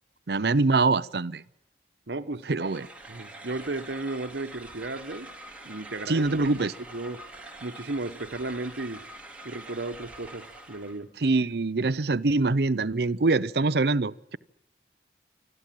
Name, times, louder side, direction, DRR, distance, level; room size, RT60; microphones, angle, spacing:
voice 1, 0.3-1.4 2.5-2.9 6.1-6.7 11.2-14.4, right 3 dB, 65° right, 0.7 m, -24 dB
voice 2, 2.1-2.5 3.1-5.3 5.6-6.3 6.9-7.2 7.6-9.0 9.4-11.1, right 2 dB, 80° right, 1.2 m, -34 dB
sound 1, 2.6-11.0, right 1 dB, 5° right, 2.4 m, -45 dB
26.5 x 13.5 x 7.6 m
head